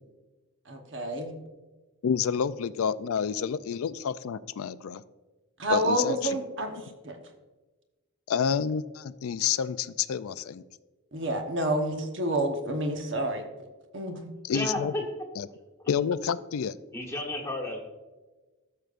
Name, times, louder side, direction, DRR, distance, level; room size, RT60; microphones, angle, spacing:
voice 1, 0.7-1.4 5.6-6.8 7.0-7.2 11.1-13.4 13.9-14.3, right 1 dB, 55° right, 4 dB, 1.1 m, -29 dB
voice 2, 2.0-5.0 5.7-6.4 8.3-10.6 14.4-14.9 15.4-15.5 15.9-16.7, left 7 dB, 75° left, 16 dB, 0.4 m, -29 dB
voice 3, 14.5-15.0 16.9-17.8, left 1 dB, 10° left, 0 dB, 1.3 m, -32 dB
13.5 x 6.6 x 2.5 m, 1.2 s
head